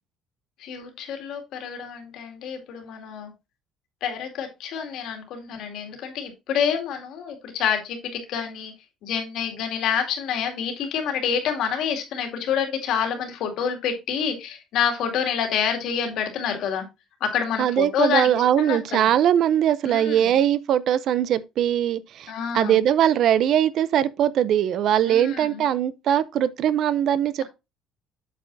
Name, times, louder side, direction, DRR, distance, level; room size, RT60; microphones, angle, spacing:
voice 1, 0.6-3.3 4.0-8.7 9.0-16.8 17.2-18.3 18.6-19.1 19.8-20.3 22.3-22.8 25.0-25.6, left 7 dB, 60° left, 2.3 m, -27 dB
voice 2, 17.6-27.4, right 10 dB, 50° right, 0.5 m, -21 dB
8.5 x 7.1 x 2.6 m
cardioid pair, 170°, 0 cm